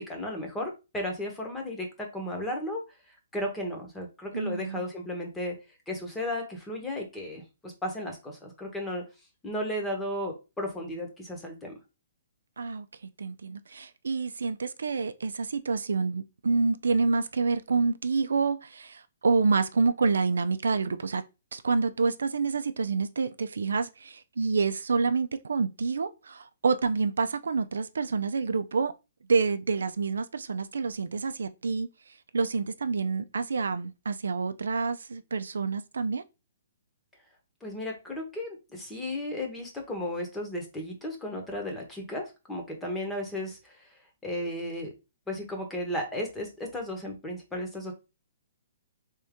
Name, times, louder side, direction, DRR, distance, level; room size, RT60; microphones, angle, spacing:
voice 1, 0.0-5.6 5.9-9.1 9.4-11.7 37.6-43.9 44.2-44.9 45.3-47.9, left 1 dB, 10° left, 1.1 m, -34 dB
voice 2, 4.3-4.8 12.6-12.9 13.2-21.2 21.5-28.9 29.3-31.9 32.3-36.2, right 4 dB, 85° right, 0.4 m, -28 dB
3.5 x 2.7 x 3.5 m
hypercardioid pair, 150°, 0 cm